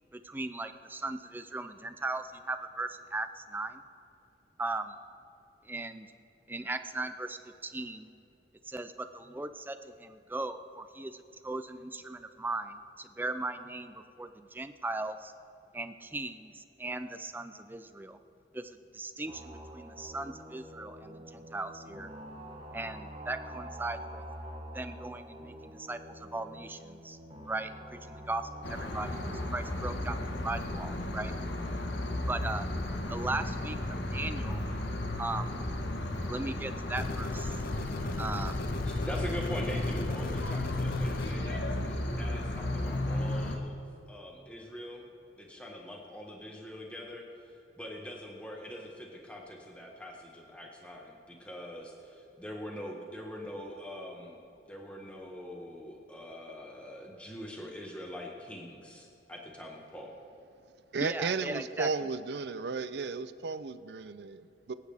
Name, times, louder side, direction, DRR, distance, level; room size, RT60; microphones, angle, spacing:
voice 1, 0.1-3.8 4.6-5.0 5.6-6.1 6.5-8.1 8.7-15.3 15.7-18.2 18.5-22.1 22.7-24.2 24.7-27.2 27.5-31.3 32.3-32.7 33.1-33.8 34.1-34.6 35.2-35.5 36.3-37.6 38.2-38.6 61.0-62.1, right 2 dB, 10° right, 9 dB, 0.4 m, -38 dB
sound 1, 19.3-31.0, equal, 30° right, 1.3 m, -46 dB
sound 2, 28.6-43.6, left 1 dB, 85° left, 1.2 m, -34 dB
sound 3, 37.0-41.4, left 3 dB, 50° left, 0.5 m, -37 dB
voice 2, 38.8-45.1 45.4-54.4 54.7-60.1, equal, 5° left, -2 dB, 1.4 m, -43 dB
voice 3, 60.9-64.7, right 4 dB, 70° right, 13 dB, 0.5 m, -34 dB
24.0 x 8.6 x 3.5 m, 2.7 s
head